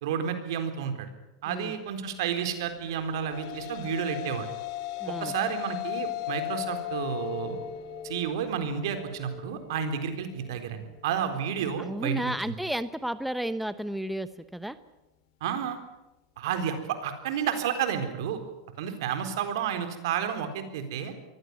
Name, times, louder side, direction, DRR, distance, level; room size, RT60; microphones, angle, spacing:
voice 1, 0.0-1.1 1.4-4.5 5.2-7.6 8.0-12.3 15.4-15.8 16.4-18.4 18.8-21.1, right 8 dB, 75° right, 8 dB, 4.0 m, -31 dB
sound 1, 2.9-11.5, left 13 dB, 60° left, 2.5 m, -37 dB
voice 2, 5.0-5.3 11.8-14.8, right 1 dB, ahead, 13 dB, 0.9 m, -32 dB
23.0 x 16.5 x 9.6 m, 0.97 s
supercardioid pair, 115°, 2 cm